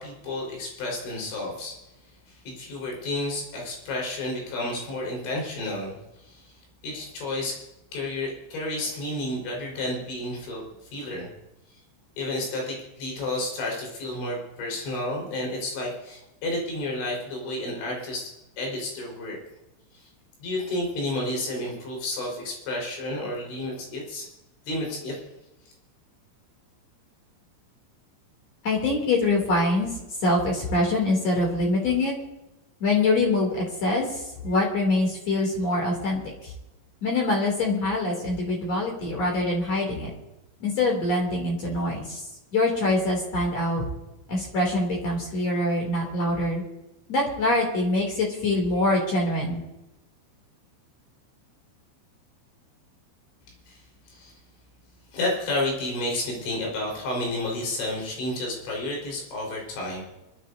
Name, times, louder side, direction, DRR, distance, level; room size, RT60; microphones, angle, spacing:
voice 1, 0.0-1.8 2.3-5.9 6.2-6.5 6.8-7.6 7.9-10.6 10.9-11.3 12.2-18.3 18.6-19.4 19.9-20.1 20.4-24.3 24.7-25.2 53.7-53.8 54.1-54.3 55.1-60.0, left 1 dB, 70° left, -2 dB, 6.8 m, -31 dB
voice 2, 28.6-29.9 30.2-32.1 32.8-36.2 37.0-40.1 40.6-42.2 42.5-43.8 44.3-46.6 47.1-49.6, left 2 dB, 40° left, -1 dB, 3.4 m, -24 dB
25.5 x 12.5 x 2.7 m, 0.96 s
omnidirectional pair, 5.5 m